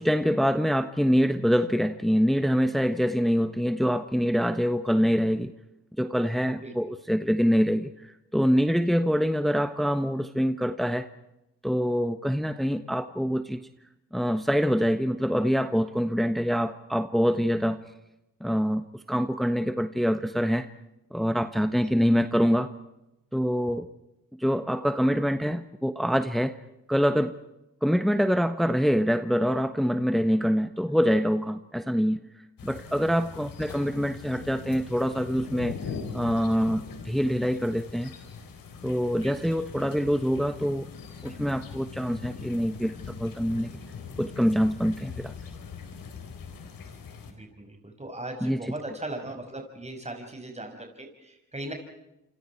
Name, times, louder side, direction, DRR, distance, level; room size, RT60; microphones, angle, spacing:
voice 1, 0.0-5.5 6.0-11.1 11.6-13.7 14.1-17.8 18.4-20.7 21.1-22.7 23.3-23.9 24.3-26.6 26.9-27.3 27.8-32.2 32.6-35.7 36.1-38.1 38.8-40.9 41.2-43.8 44.2-45.3 48.4-48.6, equal, ahead, 10 dB, 1.4 m, -25 dB
sound 1, 32.6-47.3, left 5 dB, 75° left, 4.1 m, -41 dB
voice 2, 39.2-39.5 47.3-51.7, right 1 dB, 20° right, 4 dB, 5.7 m, -39 dB
28.5 x 25.5 x 4.7 m, 0.88 s
supercardioid pair, 50°, 34 cm